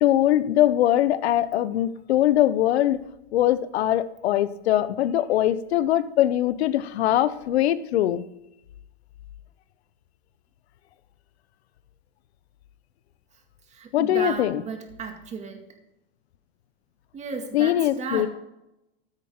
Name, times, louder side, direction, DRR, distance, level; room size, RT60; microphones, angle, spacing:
voice 1, 0.0-3.0 3.3-8.3 13.9-14.6 17.5-18.3, left 12 dB, 75° left, 15 dB, 0.9 m, -22 dB
voice 2, 13.7-15.6 17.1-18.3, right 5 dB, 20° right, 4 dB, 2.2 m, -34 dB
13.5 x 9.8 x 3.7 m, 0.88 s
supercardioid pair, 135°, 32 cm